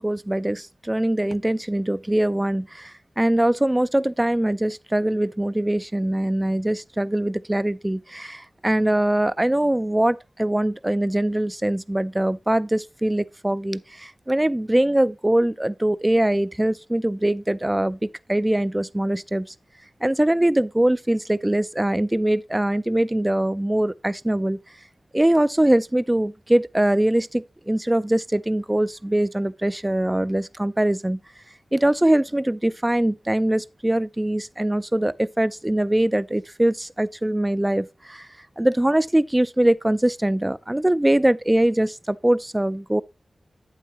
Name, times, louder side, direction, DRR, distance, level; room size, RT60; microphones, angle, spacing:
voice 1, 0.0-19.5 20.0-24.6 25.1-31.2 31.7-38.3 38.6-43.0, right 1 dB, 15° right, 0.3 m, -22 dB
8.5 x 8.0 x 2.9 m
wide cardioid pair, 70°, 0 cm